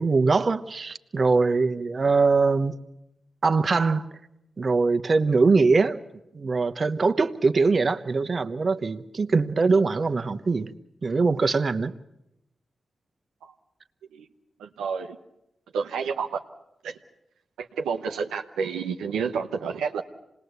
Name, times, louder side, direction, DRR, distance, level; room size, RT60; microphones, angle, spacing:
voice 1, 0.0-2.8 3.4-4.1 4.6-6.0 6.3-10.7 11.0-11.9, right 4 dB, 50° right, 1.0 m, -22 dB
voice 2, 14.6-15.2 15.7-16.4 16.8-17.0 17.6-20.0, right 6 dB, 90° right, 0.9 m, -30 dB
26.5 x 19.5 x 8.1 m
supercardioid pair, 40°, 0 cm